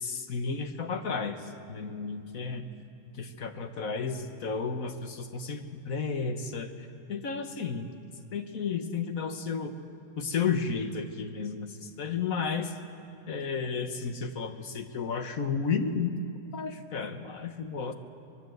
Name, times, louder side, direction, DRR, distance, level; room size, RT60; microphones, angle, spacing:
voice 1, 0.0-2.6 3.2-7.9 8.3-9.8 10.2-12.7 13.3-16.2 16.5-17.9, left 5 dB, 70° left, 7 dB, 1.6 m, -32 dB
24.5 x 20.0 x 8.0 m, 2.6 s
omnidirectional pair, 1.5 m